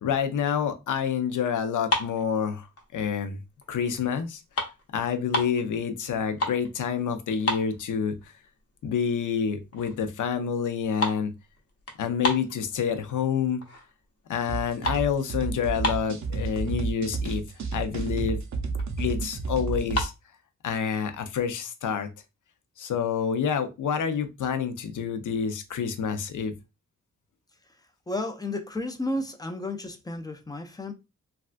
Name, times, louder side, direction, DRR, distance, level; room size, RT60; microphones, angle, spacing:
voice 1, 0.0-2.7 2.9-3.4 3.7-4.4 4.9-8.1 8.8-11.3 12.0-13.6 14.3-17.4 17.7-18.4 19.0-20.1 20.6-22.1 22.8-26.5, left 7 dB, 80° left, 0.6 m, -28 dB
sound 1, 1.7-3.1 3.6-3.9 4.2-5.6 6.1-6.7 7.0-7.1 7.4-8.3 8.7-8.8 9.4-9.5 9.7-10.1 10.3-13.1 13.6-14.0 14.3-16.3 17.0-17.1 17.3-17.5 18.0-18.1 18.3-19.0 19.7-20.1, left 1 dB, 50° left, 0.8 m, -31 dB
sound 2, 14.5-20.0, right 4 dB, 65° right, 0.6 m, -31 dB
voice 2, 28.1-30.9, left 1 dB, 15° left, 0.4 m, -32 dB
3.4 x 2.3 x 2.4 m
wide cardioid pair, 120°, 30 cm